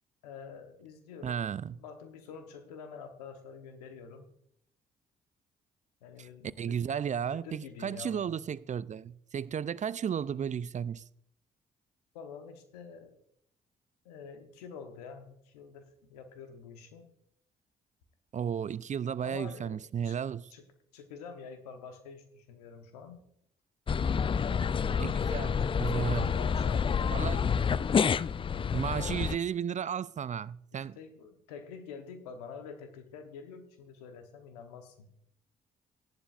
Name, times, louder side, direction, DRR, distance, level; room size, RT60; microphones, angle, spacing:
voice 1, 0.2-1.4 1.8-4.3 6.0-6.8 7.2-8.3 12.1-13.1 14.0-17.1 19.2-19.8 20.0-20.2 20.5-20.6 20.9-23.2 24.3-25.4 26.3-27.6 30.7-35.1, left 6 dB, 90° left, 1.0 m, -47 dB
voice 2, 1.2-1.8 6.2-6.3 6.6-11.0 18.3-20.5 25.0-26.3 27.1-27.4 28.7-31.0, right 8 dB, 40° right, 0.4 m, -34 dB
sound 1, 23.9-29.4, left 6 dB, 25° left, 0.3 m, -28 dB
15.0 x 11.0 x 2.5 m
hypercardioid pair, 45°, 20 cm